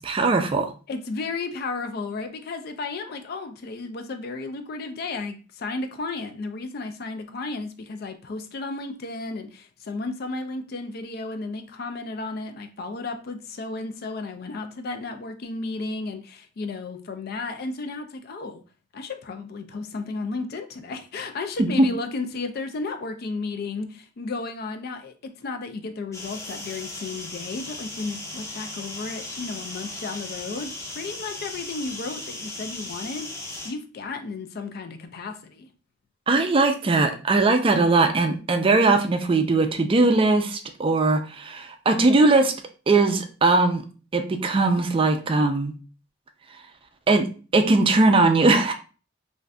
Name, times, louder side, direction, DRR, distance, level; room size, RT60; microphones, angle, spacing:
voice 1, 0.1-0.7 21.6-21.9 36.3-42.5 42.9-43.8 44.1-45.7 47.1-47.3 47.5-48.7, right 3 dB, 30° right, 6 dB, 0.4 m, -20 dB
voice 2, 0.9-18.6 18.9-35.7, left 3 dB, 55° left, 8 dB, 0.4 m, -33 dB
sound 1, 26.1-33.7, left 2 dB, 15° left, 0.6 m, -37 dB
2.5 x 2.4 x 3.3 m, 0.36 s
head